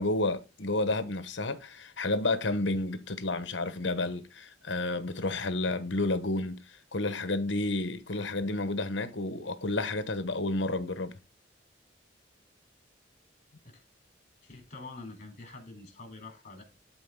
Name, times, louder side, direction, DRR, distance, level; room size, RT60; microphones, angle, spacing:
voice 1, 0.0-6.6 6.9-11.1, left 2 dB, 65° left, 1.2 m, -31 dB
voice 2, 14.4-16.6, left 3 dB, 40° left, 3.5 m, -46 dB
12.5 x 4.2 x 3.7 m
head